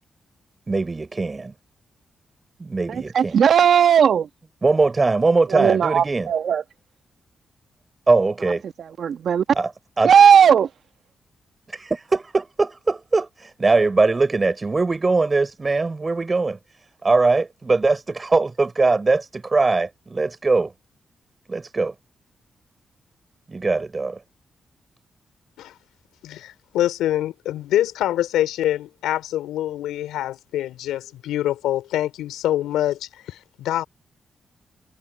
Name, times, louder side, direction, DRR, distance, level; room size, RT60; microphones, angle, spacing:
voice 1, 0.7-1.5 2.6-3.4 4.6-6.3 8.1-8.6 9.5-10.1 11.7-16.6 17.0-20.7 21.5-21.9 23.5-24.2, right 3 dB, 35° right, 5.1 m, -21 dB
voice 2, 2.9-4.3 5.5-6.6 9.0-9.4 10.0-10.6, right 8 dB, 70° right, 1.7 m, -16 dB
voice 3, 26.2-33.9, left 13 dB, 85° left, 3.5 m, -25 dB
supercardioid pair, 40°, 0 cm